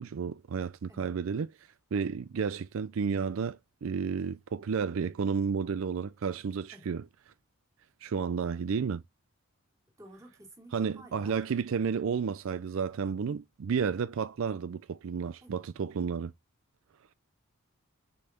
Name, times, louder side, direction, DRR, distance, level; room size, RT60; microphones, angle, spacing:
voice 1, 0.0-1.5 1.9-7.0 8.0-9.0 10.7-16.3, right 6 dB, 65° right, 0.4 m, -32 dB
voice 2, 10.0-11.4 15.4-15.6, right 1 dB, 15° right, 2.6 m, -53 dB
7.0 x 5.2 x 5.7 m
head